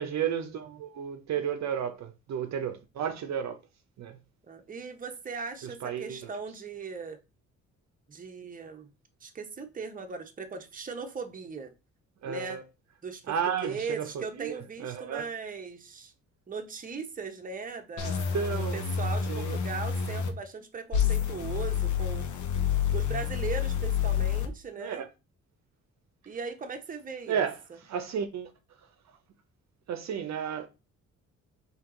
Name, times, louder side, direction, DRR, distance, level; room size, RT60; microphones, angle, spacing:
voice 1, 0.0-3.6 4.0-4.2 5.6-6.3 12.2-12.6 13.3-15.2 18.0-18.8 19.3-19.6 24.8-25.1 27.3-27.6 27.9-28.5 29.9-30.7, right 8 dB, 65° right, 0.7 m, -33 dB
voice 2, 4.5-7.2 8.1-8.9 9.2-11.7 12.2-12.6 13.0-13.2 13.6-16.1 16.5-18.4 18.7-22.3 22.9-25.0 26.3-27.5, right 5 dB, 25° right, 0.8 m, -38 dB
sound 1, 18.0-20.3 20.9-24.5, left 8 dB, 75° left, 0.9 m, -28 dB
4.4 x 2.9 x 3.7 m
cardioid pair, 90°, 30 cm